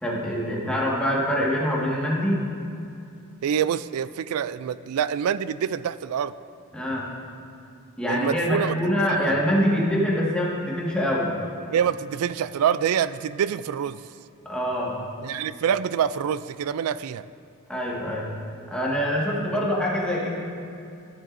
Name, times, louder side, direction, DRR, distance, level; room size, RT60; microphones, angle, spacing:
voice 1, 0.0-2.4 6.7-7.1 8.0-11.3 14.5-14.9 17.7-18.3 18.7-20.3, equal, 5° left, -6 dB, 1.7 m, -24 dB
voice 2, 3.4-6.4 8.1-8.7 9.1-9.2 11.7-14.0 15.2-17.3 19.5-19.6, right 8 dB, 75° right, 17 dB, 0.3 m, -26 dB
14.5 x 9.1 x 2.6 m, 2.6 s
head